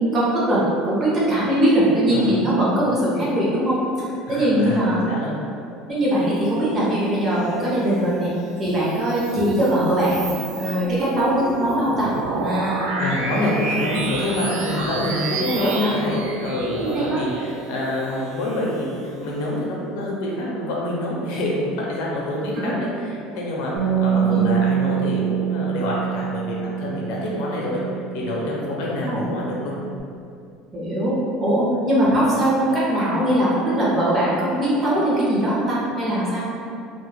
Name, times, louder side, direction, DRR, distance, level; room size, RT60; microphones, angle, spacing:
voice 1, 0.0-5.0 5.9-8.3 8.6-13.1 13.4-13.5 15.5-15.9 16.7-17.2 22.5-22.8 24.2-24.5 29.0-29.3 30.7-36.4, right 1 dB, 25° right, -7 dB, 0.6 m, -21 dB
voice 2, 4.3-4.8 5.1-5.4 13.0-18.9 19.2-22.9 23.4-27.8 28.1-29.7, left 1 dB, 70° left, -4 dB, 0.5 m, -26 dB
sound 1, 8.4-19.3, right 3 dB, 75° right, 0.3 m, -31 dB
Bass guitar, 23.8-30.0, right 9 dB, 90° right, 0.7 m, -25 dB
2.2 x 2.1 x 3.1 m, 2.5 s
cardioid pair, 170°, 0 cm